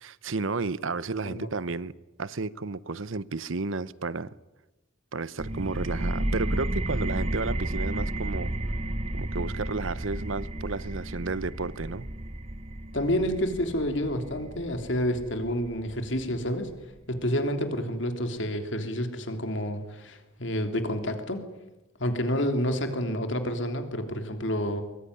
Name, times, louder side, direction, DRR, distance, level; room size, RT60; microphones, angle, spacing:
voice 1, 0.0-1.9 2.2-4.3 5.1-8.5 9.1-12.1, right 3 dB, 75° right, 0.9 m, -32 dB
sound 1, 5.4-16.8, right 1 dB, 30° right, 0.9 m, -33 dB
voice 2, 12.9-16.7 17.1-21.4 22.0-24.8, equal, 60° left, 3.3 m, -29 dB
23.5 x 21.5 x 9.9 m
head